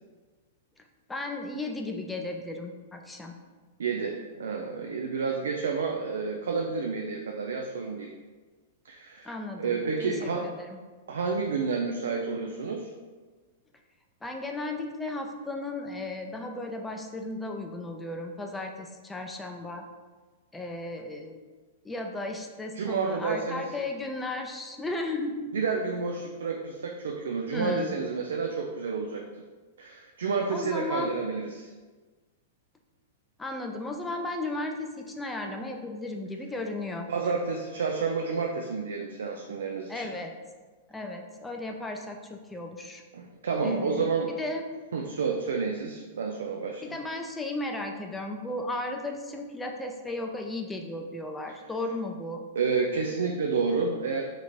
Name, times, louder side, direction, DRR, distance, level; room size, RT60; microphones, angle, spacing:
voice 1, 1.1-3.4 9.3-10.8 14.2-19.9 20.5-21.4 21.8-25.5 27.5-28.0 30.5-31.3 33.4-37.1 39.9-40.3 40.9-43.0 43.6-44.1 44.4-44.7 46.8-52.4, left 2 dB, 10° left, 3 dB, 0.4 m, -35 dB
voice 2, 3.8-8.1 8.8-9.3 9.6-10.5 11.1-12.9 22.8-23.7 25.5-29.3 29.8-31.7 37.1-40.1 43.1-44.3 44.9-46.8 52.6-54.2, right 5 dB, 80° right, 2 dB, 0.3 m, -30 dB
3.0 x 2.5 x 4.3 m, 1.3 s
hypercardioid pair, 115°, 0 cm